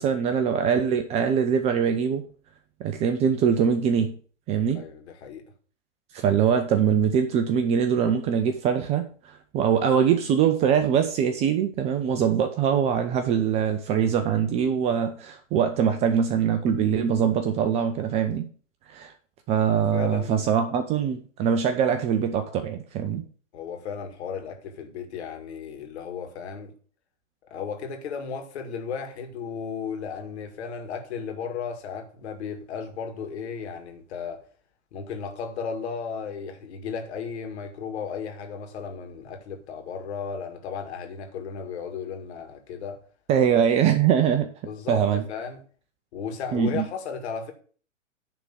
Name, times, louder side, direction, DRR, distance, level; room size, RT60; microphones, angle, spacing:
voice 1, 0.0-2.3 2.8-4.1 4.5-4.8 6.1-18.5 18.9-19.1 19.5-23.2 43.3-44.5 44.9-45.2 46.5-46.8, right 8 dB, 15° right, 0.5 m, -23 dB
voice 2, 4.7-5.4 19.7-20.5 23.5-26.7 27.5-34.4 34.9-43.0 44.6-45.6 46.1-47.5, left 6 dB, 55° left, 2.2 m, -35 dB
10.0 x 3.7 x 7.3 m
hypercardioid pair, 120°, 38 cm